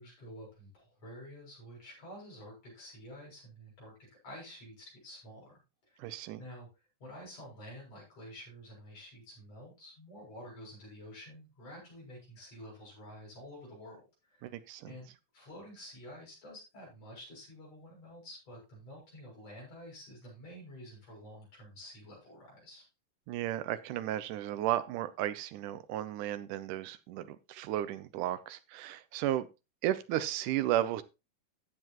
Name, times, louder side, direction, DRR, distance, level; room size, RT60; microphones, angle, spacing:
voice 1, 0.0-3.9 4.2-5.5 5.9-6.7 7.0-14.1 14.3-22.9, equal, 50° left, -3 dB, 7.9 m, -50 dB
voice 2, 6.0-6.4 14.4-14.9 23.3-29.5 29.8-31.0, right 13 dB, 80° right, 13 dB, 2.3 m, -34 dB
14.0 x 7.9 x 3.0 m, 0.27 s
omnidirectional pair, 3.6 m